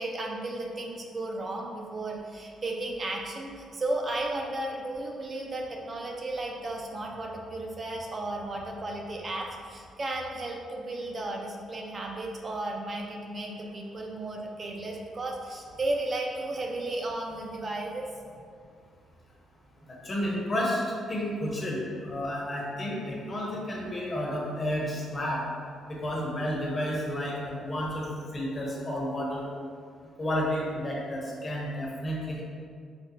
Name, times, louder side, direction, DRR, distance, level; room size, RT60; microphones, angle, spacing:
voice 1, 0.0-18.3, right 2 dB, 40° right, 0 dB, 0.4 m, -34 dB
voice 2, 19.9-20.8 21.1-25.4 25.9-28.1 28.3-29.5 30.2-32.4, equal, 35° left, -4 dB, 0.9 m, -31 dB
4.9 x 2.0 x 2.8 m, 2.2 s
cardioid pair, 90°, 0 cm